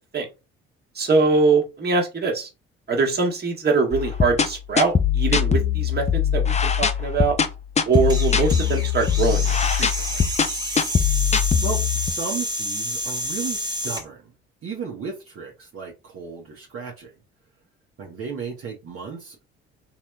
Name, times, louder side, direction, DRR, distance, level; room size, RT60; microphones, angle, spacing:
voice 1, 0.9-2.5 2.9-7.4 7.8-10.2, right 4 dB, 35° right, 1.5 m, -23 dB
sound 1, 3.9-12.1, left 7 dB, 25° left, 0.5 m, -22 dB
sound 2, 7.9-14.0, equal, 15° right, 1.4 m, -29 dB
voice 2, 11.2-14.3 14.6-17.1 18.0-19.4, right 5 dB, 50° right, 1.2 m, -34 dB
3.9 x 3.1 x 2.4 m
hypercardioid pair, 55°, 29 cm